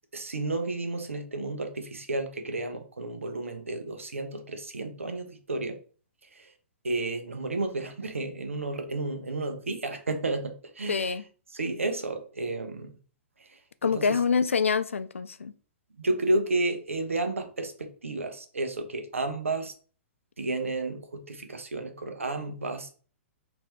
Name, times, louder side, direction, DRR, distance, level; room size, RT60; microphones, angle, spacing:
voice 1, 0.1-5.8 6.3-6.5 6.8-11.1 11.5-13.0 13.4-14.2 16.0-19.7 20.4-22.9, right 2 dB, 85° right, 7 dB, 0.8 m, -32 dB
voice 2, 10.9-11.2 13.8-15.5, left 5 dB, 80° left, 14 dB, 0.4 m, -26 dB
4.3 x 2.8 x 3.3 m, 0.40 s
figure-of-eight pair, 115°, 7 cm